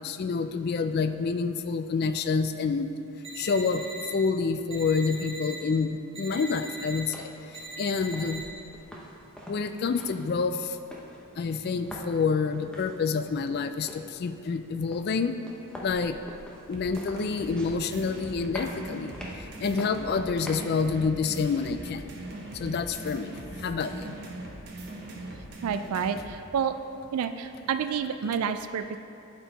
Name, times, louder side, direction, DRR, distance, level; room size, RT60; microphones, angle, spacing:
voice 1, 0.0-2.9 3.4-3.9 4.1-7.3 7.8-8.5 9.5-10.8 11.4-15.3 15.8-16.2 16.7-19.1 19.6-22.1 22.5-23.3 23.6-24.1, left 5 dB, 45° left, 10 dB, 0.3 m, -28 dB
sound 1, 3.2-4.1 4.7-5.6 6.1-7.0 7.5-8.4, right 2 dB, 25° right, 1.2 m, -40 dB
steps over wood, 7.0-21.0, equal, 5° left, 0.7 m, -46 dB
sound 2, 16.7-26.3, right 2 dB, 45° right, 1.0 m, -41 dB
voice 2, 25.6-26.7 27.1-29.0, right 7 dB, 75° right, 10 dB, 0.3 m, -29 dB
11.0 x 4.4 x 4.1 m, 2.7 s
head